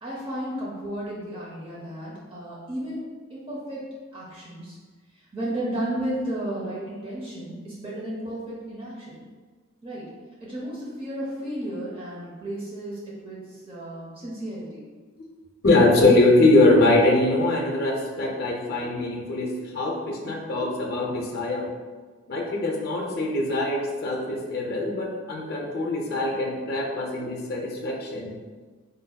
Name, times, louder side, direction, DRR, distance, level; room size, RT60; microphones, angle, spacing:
voice 1, 0.0-4.8 5.3-9.2 9.8-10.0 10.4-13.0 13.2-14.9 26.2-26.3, right 1 dB, 25° right, -6 dB, 0.6 m, -33 dB
voice 2, 15.6-21.7 22.3-28.3, left 2 dB, 45° left, -1 dB, 0.5 m, -22 dB
3.9 x 2.6 x 2.2 m, 1.4 s
head